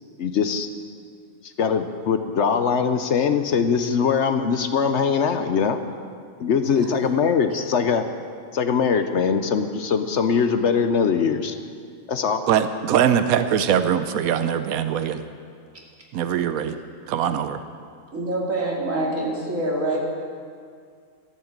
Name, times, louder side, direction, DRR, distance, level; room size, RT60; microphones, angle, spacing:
voice 1, 0.2-0.7 1.6-5.8 6.4-8.0 8.5-11.6 12.1-12.4, left 6 dB, 60° left, 8 dB, 1.0 m, -21 dB
voice 2, 12.5-15.2 16.1-16.8 17.1-17.6, right 9 dB, 90° right, 10 dB, 1.1 m, -22 dB
voice 3, 18.1-20.0, right 1 dB, 65° right, -3 dB, 2.9 m, -26 dB
13.0 x 11.5 x 7.3 m, 2.2 s
omnidirectional pair, 1.4 m